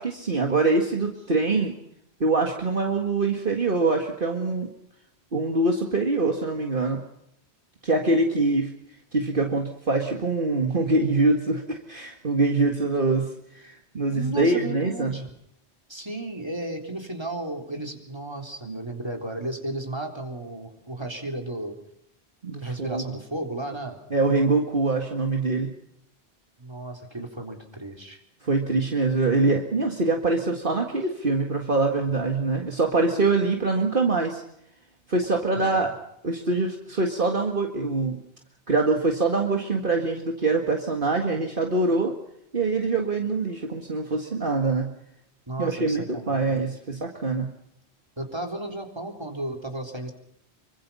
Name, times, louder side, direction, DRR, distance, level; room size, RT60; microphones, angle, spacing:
voice 1, 0.0-1.7 2.2-4.7 5.3-7.0 7.8-8.7 9.1-15.1 18.7-18.8 22.4-23.0 24.1-25.7 28.4-34.4 35.1-35.9 36.2-38.2 38.7-42.2 42.5-44.9 45.6-47.5, right 3 dB, 50° right, 2 dB, 2.1 m, -24 dB
voice 2, 14.1-15.3 15.9-21.8 22.6-24.0 26.6-28.2 35.6-35.9 45.5-46.5 48.2-50.1, right 1 dB, 25° right, 3 dB, 3.8 m, -34 dB
26.0 x 24.0 x 5.6 m, 0.75 s
omnidirectional pair, 1.1 m